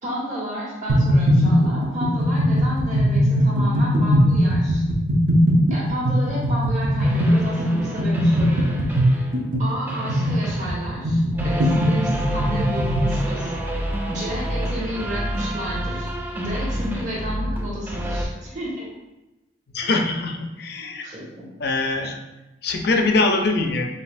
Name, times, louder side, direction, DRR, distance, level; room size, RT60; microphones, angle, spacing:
voice 1, 0.0-4.8 5.7-8.8 9.1-9.3 9.6-13.5 14.1-18.9 19.8-19.9 21.0-21.4, equal, 40° right, -8 dB, 1.5 m, -31 dB
sound 1, 0.9-13.2, equal, 85° right, 0.8 m, -20 dB
sound 2, 7.0-9.5 9.9-18.3, equal, 10° right, 0.4 m, -29 dB
voice 2, 19.7-21.0 21.6-22.1 22.6-23.9, left 3 dB, 55° left, 3 dB, 0.5 m, -22 dB
5.4 x 2.8 x 2.6 m, 1.0 s
head